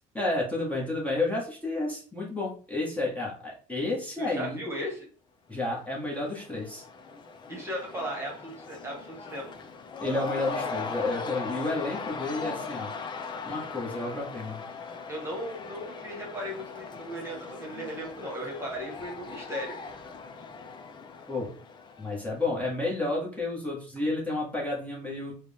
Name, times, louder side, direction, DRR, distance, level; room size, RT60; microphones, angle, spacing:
voice 1, 0.1-4.6 5.5-6.8 10.0-12.9 13.4-14.6 21.3-21.5 22.0-25.3, left 2 dB, 10° left, -4 dB, 1.4 m, -31 dB
voice 2, 4.2-5.1 7.5-9.5 15.1-19.8, equal, 20° right, -1 dB, 1.5 m, -36 dB
Cheering / Crowd, 5.7-22.6, left 4 dB, 35° left, 0.6 m, -39 dB
4.9 x 2.4 x 3.4 m, 0.40 s
cardioid pair, 120°, 14 cm